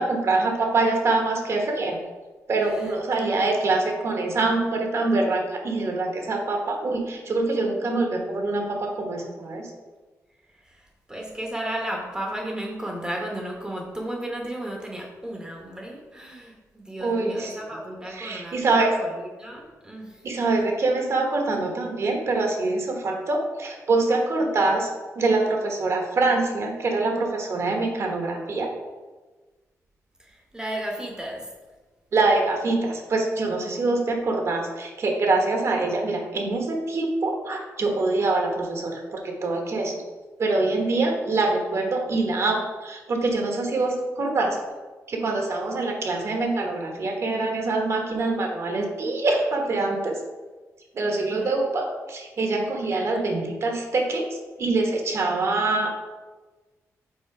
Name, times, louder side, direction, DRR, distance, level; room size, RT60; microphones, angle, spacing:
voice 1, 0.0-2.0 2.5-9.7 17.0-17.6 18.1-19.0 20.2-24.9 25.1-28.7 32.1-40.0 40.4-44.6 45.1-50.2 50.9-54.2 54.6-56.0, right 3 dB, 50° right, 2 dB, 1.2 m, -24 dB
voice 2, 2.6-3.0 10.6-20.2 30.2-31.5 51.1-51.5 52.9-53.3, right 1 dB, 10° right, 0 dB, 1.0 m, -34 dB
5.5 x 4.2 x 4.9 m, 1.3 s
wide cardioid pair, 140°, 6 cm